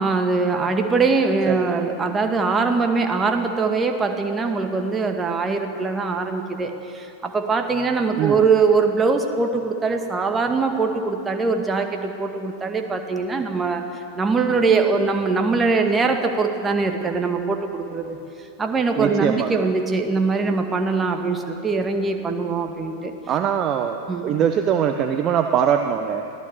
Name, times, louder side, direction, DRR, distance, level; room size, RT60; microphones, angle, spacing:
voice 1, 0.0-18.2 18.6-23.1 24.1-24.3, right 4 dB, 15° right, 5 dB, 2.1 m, -22 dB
voice 2, 19.0-19.5 23.3-26.2, right 8 dB, 30° right, 6 dB, 1.1 m, -22 dB
24.0 x 16.5 x 8.1 m, 2.7 s
figure-of-eight pair, 90°, 0 cm